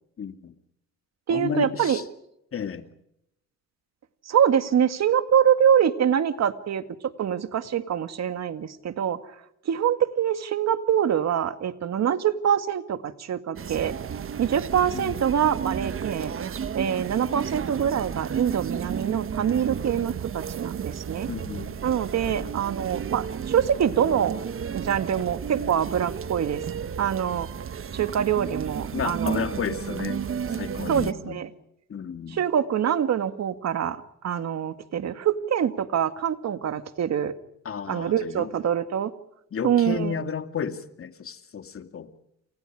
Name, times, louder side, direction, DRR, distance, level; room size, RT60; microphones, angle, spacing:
voice 1, 0.2-0.6 1.3-2.0 2.5-2.9 14.9-15.2 21.3-21.9 22.2-22.5 28.9-30.2 30.5-31.4 31.9-32.4 37.6-38.5 39.5-42.1, left 7 dB, 45° left, 8 dB, 2.5 m, -32 dB
voice 2, 1.3-2.0 4.3-6.9 7.2-9.2 9.7-13.9 14.4-16.3 16.7-21.3 21.8-24.4 24.7-26.6 27.0-27.5 27.9-29.4 30.9-31.5 32.3-37.3 37.9-39.1 39.6-40.1, right 9 dB, 60° right, 10 dB, 2.1 m, -25 dB
sound 1, 13.6-31.1, right 7 dB, 45° right, 1.2 m, -33 dB
29.5 x 28.5 x 5.0 m, 0.79 s
cardioid pair, 90°, 30 cm